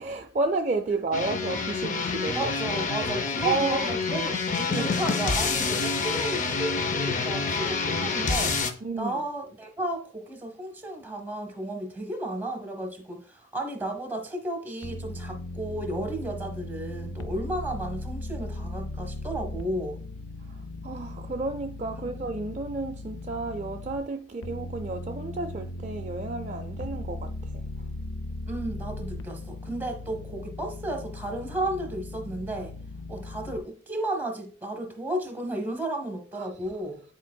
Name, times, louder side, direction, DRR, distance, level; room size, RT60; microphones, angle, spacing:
voice 1, 0.0-2.5 3.4-4.2 4.6-4.9 8.8-9.3 20.8-27.6 36.4-36.5, right 3 dB, 35° right, 0.4 m, -31 dB
sound 1, 1.1-8.7, left 4 dB, 40° left, 0.6 m, -27 dB
voice 2, 2.3-4.4 4.7-8.6 9.0-20.0 28.5-32.7 33.1-37.0, right 1 dB, 10° right, 1.0 m, -33 dB
sound 2, 14.8-24.0 24.4-33.6, left 2 dB, 85° left, 0.5 m, -38 dB
10.0 x 4.4 x 2.2 m
head